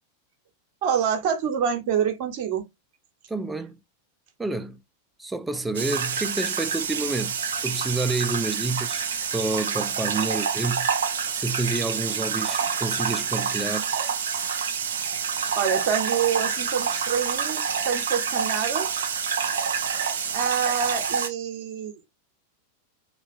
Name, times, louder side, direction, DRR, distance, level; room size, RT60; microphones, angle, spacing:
voice 1, 0.8-2.6 15.5-19.1 20.3-22.0, right 7 dB, 45° right, 1.0 m, -27 dB
voice 2, 3.3-3.8 4.4-4.8 5.2-9.0 9.3-10.9 11.3-13.9, right 3 dB, 10° right, 0.3 m, -29 dB
sound 1, 5.7-21.3, right 6 dB, 65° right, 0.6 m, -27 dB
3.4 x 2.7 x 2.6 m
figure-of-eight pair, 90°, 0 cm